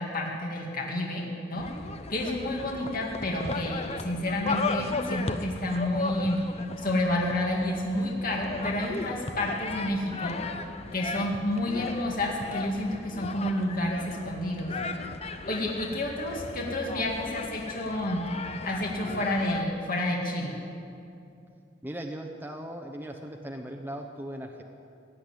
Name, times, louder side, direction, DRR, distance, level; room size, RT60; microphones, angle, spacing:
voice 1, 0.0-1.6 2.1-6.4 6.8-10.4 10.9-14.7 15.5-18.2 18.6-20.6, left 1 dB, 50° left, -1 dB, 2.0 m, -30 dB
sound 1, 1.6-19.6, left 3 dB, 35° left, 0.7 m, -36 dB
voice 2, 21.8-24.6, right 1 dB, 10° right, 3 dB, 0.8 m, -38 dB
16.5 x 9.8 x 8.8 m, 2.6 s
head